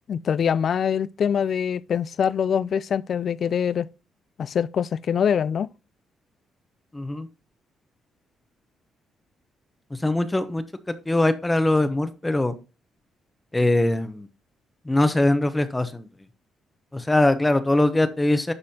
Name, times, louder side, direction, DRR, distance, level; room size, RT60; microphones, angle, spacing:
voice 1, 0.1-3.9 4.4-5.7, left 7 dB, 55° left, 0.3 m, -24 dB
voice 2, 6.9-7.3 10.0-10.6 11.1-12.5 13.5-14.3 14.9-16.0 16.9-18.5, left 1 dB, 15° left, 0.8 m, -21 dB
11.5 x 4.2 x 2.8 m
cardioid pair, 90°, 0 cm